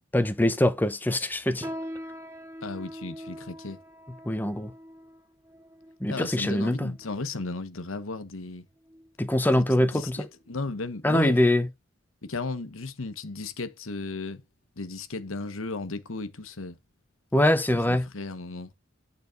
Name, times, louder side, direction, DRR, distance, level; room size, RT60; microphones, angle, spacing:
voice 1, 0.0-1.7 4.3-4.7 6.0-6.9 9.2-10.2 11.0-11.7 17.3-18.1, left 1 dB, 10° left, 0.6 m, -23 dB
sound 1, 1.6-7.3 8.0-8.1 8.8-9.1 9.5-9.7 10.4-10.5, equal, 15° right, 1.0 m, -42 dB
voice 2, 2.6-3.8 6.1-8.7 9.6-11.4 12.2-14.4 14.8-16.7 17.7-18.7, left 3 dB, 90° left, 1.2 m, -35 dB
9.1 x 4.1 x 5.2 m
head